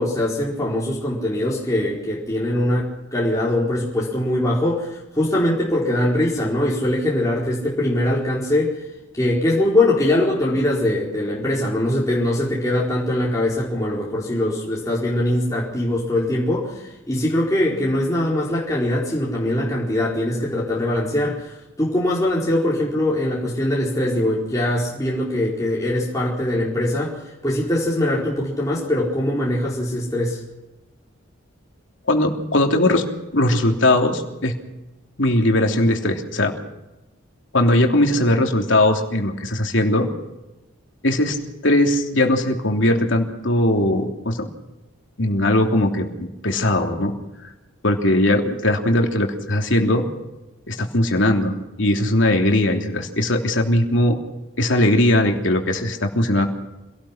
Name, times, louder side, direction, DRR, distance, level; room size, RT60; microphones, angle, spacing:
voice 1, 0.0-8.8 9.1-30.4, left 1 dB, 15° left, -6 dB, 4.6 m, -22 dB
voice 2, 32.1-33.1 33.3-34.5 35.2-36.5 37.5-40.1 41.0-41.4 41.6-44.5 45.2-47.1 47.8-50.1 50.7-54.2 54.6-56.5, left 1 dB, 65° left, 2 dB, 3.2 m, -19 dB
27.0 x 18.0 x 5.9 m, 1.0 s
head